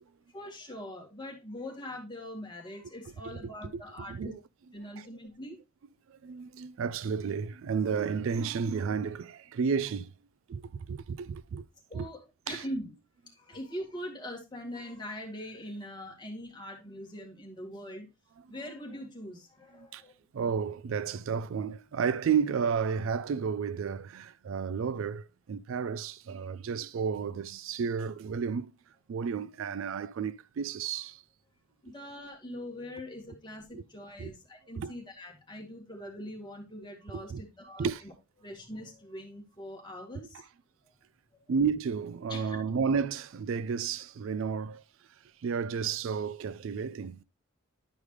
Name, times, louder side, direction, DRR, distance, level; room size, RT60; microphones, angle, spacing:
voice 1, 0.3-4.3 4.7-5.6 11.9-12.2 12.5-12.9 13.3-18.1 18.5-20.1 31.8-38.1 38.4-40.4 40.8-41.0 42.3-42.6, left 1 dB, 20° left, 2.0 m, -42 dB
voice 2, 4.1-4.4 5.0-5.1 6.1-10.1 10.5-11.7 11.9-12.1 12.5-12.7 19.7-20.0 20.3-28.7 29.1-31.2 33.7-33.8 34.2-34.3 34.8-34.9 37.1-37.4 37.8-38.0 41.5-44.8 45.4-47.2, right 6 dB, 65° right, 0.4 m, -32 dB
10.5 x 4.9 x 3.2 m
head